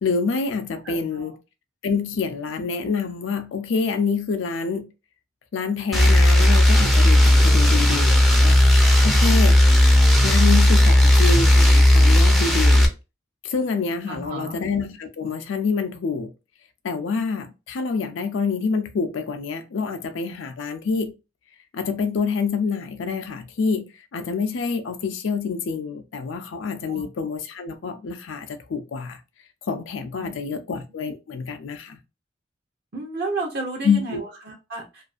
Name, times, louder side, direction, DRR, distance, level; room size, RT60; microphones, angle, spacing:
voice 1, 0.0-1.4 1.8-4.9 5.5-8.6 9.0-9.6 10.2-12.9 13.4-16.3 16.8-21.1 21.7-29.2 29.7-32.0 33.8-34.2, left 5 dB, 85° left, 0.4 m, -27 dB
voice 2, 0.8-1.3 2.0-2.2 14.1-14.6 26.9-27.0 30.2-30.6 32.9-35.0, right 3 dB, 55° right, 0.6 m, -33 dB
sound 1, 5.9-12.9, left 1 dB, ahead, 0.4 m, -15 dB
2.5 x 2.3 x 2.4 m
head